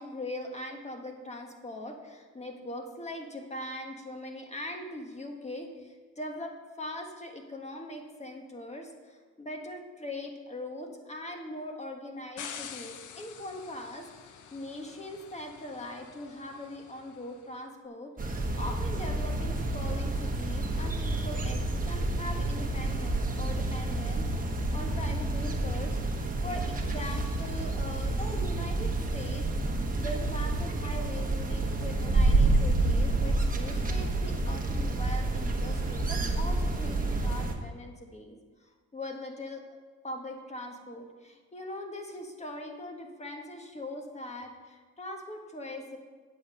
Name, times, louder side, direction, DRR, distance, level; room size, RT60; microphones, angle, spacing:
voice 1, 0.0-26.0 26.4-29.4 30.0-39.6 40.0-46.0, left 1 dB, 20° left, 3 dB, 1.5 m, -41 dB
sound 1, 12.4-17.5, left 8 dB, 75° left, 0.8 m, -47 dB
sound 2, 18.2-37.5, right 2 dB, 30° right, 1.3 m, -29 dB
8.5 x 7.6 x 5.6 m, 1.4 s
cardioid pair, 90°, 30 cm